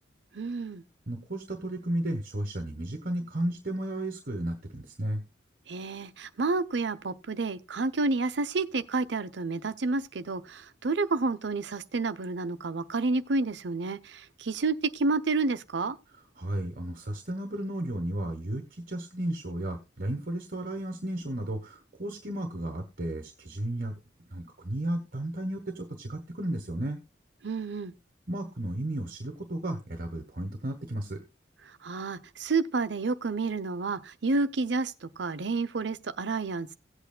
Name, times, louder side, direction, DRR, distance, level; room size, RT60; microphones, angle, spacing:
voice 1, 0.3-0.8 5.7-16.0 27.4-27.9 31.8-36.8, right 3 dB, 70° right, 0.7 m, -30 dB
voice 2, 1.1-5.2 16.4-23.9 24.3-27.0 28.3-31.2, right 1 dB, 50° right, 1.1 m, -33 dB
17.0 x 8.2 x 2.2 m
head